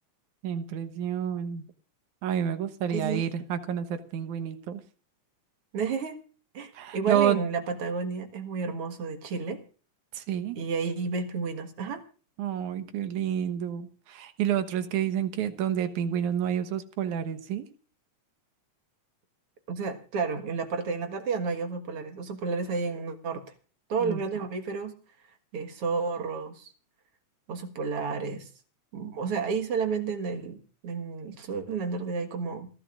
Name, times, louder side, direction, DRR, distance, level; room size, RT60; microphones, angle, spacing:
voice 1, 0.4-1.6 2.2-4.8 6.7-7.4 10.1-10.6 12.4-17.7 24.0-24.2, right 9 dB, 85° right, 9 dB, 2.5 m, -29 dB
voice 2, 2.9-3.3 5.7-6.2 6.5-9.6 10.6-12.0 19.7-23.4 23.9-25.0 25.5-26.7 27.5-28.5 28.9-32.7, right 5 dB, 55° right, 6 dB, 2.3 m, -31 dB
28.5 x 11.0 x 2.5 m, 0.38 s
omnidirectional pair, 3.4 m